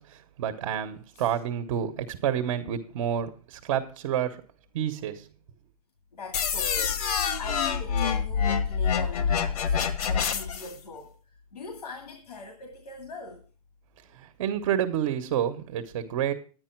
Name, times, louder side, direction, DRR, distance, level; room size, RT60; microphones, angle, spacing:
voice 1, 0.0-4.4 4.7-5.3 14.1-16.3, right 9 dB, 50° right, 7 dB, 1.3 m, -29 dB
voice 2, 6.1-11.1 11.5-13.5, left 2 dB, 85° left, 4 dB, 2.3 m, -42 dB
sound 1, 6.3-10.7, left 7 dB, 70° left, 1.4 m, -26 dB
10.5 x 9.7 x 4.6 m, 0.38 s
hypercardioid pair, 145°, 20 cm